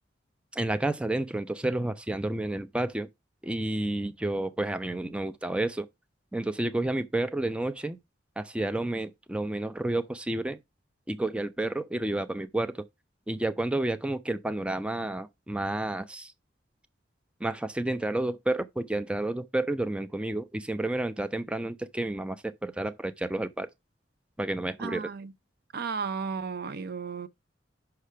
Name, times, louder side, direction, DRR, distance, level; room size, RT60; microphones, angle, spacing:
voice 1, 0.5-3.1 3.4-5.9 6.3-8.0 8.4-10.6 11.1-12.8 13.3-16.3 17.4-23.7 24.4-25.0, right 1 dB, 5° right, 0.4 m, -30 dB
voice 2, 24.8-25.3 25.7-27.3, right 5 dB, 55° right, 0.6 m, -34 dB
5.9 x 4.9 x 5.5 m
head